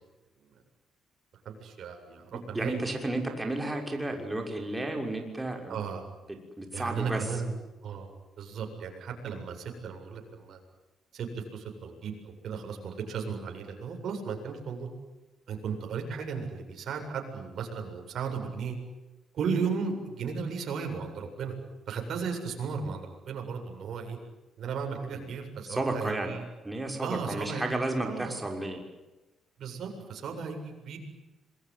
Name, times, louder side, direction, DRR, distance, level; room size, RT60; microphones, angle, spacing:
voice 1, 1.4-2.8 5.7-6.0 6.7-7.5 7.8-10.6 11.1-14.9 15.5-18.8 19.3-21.5 21.9-24.2 24.6-26.5 27.0-28.4 29.6-31.0, right 5 dB, 65° right, 3 dB, 7.7 m, -35 dB
voice 2, 2.5-5.8 6.6-7.2 25.1-25.3 25.7-26.3 26.6-28.8, right 2 dB, 15° right, 3 dB, 6.2 m, -32 dB
27.0 x 22.0 x 9.5 m, 1.1 s
cardioid pair, 90°, 0 cm